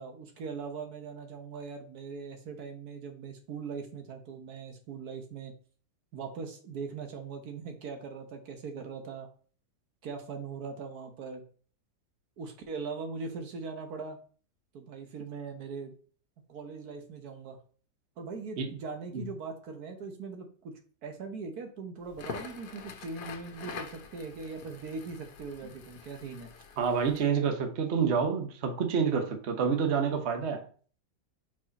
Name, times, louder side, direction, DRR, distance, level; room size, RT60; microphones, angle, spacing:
voice 1, 0.0-5.5 6.1-9.3 10.0-11.4 12.4-14.2 14.7-15.9 16.5-17.6 18.2-26.5, right 5 dB, 70° right, 4 dB, 1.4 m, -40 dB
Crackle, 22.1-27.3, left 6 dB, 80° left, 1.4 m, -45 dB
voice 2, 26.8-30.6, right 6 dB, 50° right, 4 dB, 1.1 m, -28 dB
4.9 x 4.8 x 4.0 m, 0.43 s
omnidirectional pair, 1.8 m